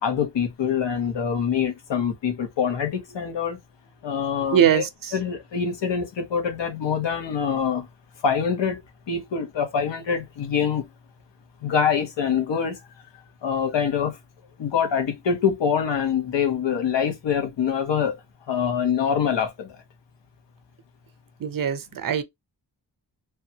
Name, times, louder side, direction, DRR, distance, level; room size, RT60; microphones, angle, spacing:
voice 1, 0.0-3.6 4.0-4.8 5.1-7.9 8.2-8.8 9.1-10.8 11.6-12.8 13.4-14.2 14.6-18.2 18.5-19.8, left 7 dB, 90° left, 0.8 m, -25 dB
voice 2, 4.5-5.1 21.4-22.2, right 9 dB, 50° right, 0.6 m, -22 dB
3.4 x 2.2 x 2.7 m
wide cardioid pair, 100°, 42 cm